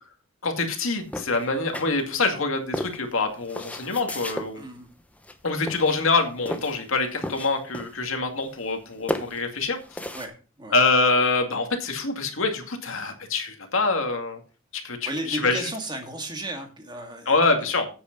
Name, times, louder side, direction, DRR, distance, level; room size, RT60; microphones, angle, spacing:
voice 1, 0.4-4.6 5.4-10.0 10.7-14.4 14.7-15.7 17.3-17.9, left 3 dB, 75° left, 4 dB, 2.2 m, -25 dB
sound 1, 1.1-2.3 2.7-4.5 5.2-5.4 5.7-6.8 7.1-8.1 8.4-10.3, left 1 dB, 5° left, 0.9 m, -33 dB
voice 2, 4.6-4.9 10.1-10.3 10.6-10.7 15.1-17.3, right 1 dB, 20° right, 4 dB, 2.1 m, -33 dB
8.7 x 7.9 x 5.3 m, 0.36 s
head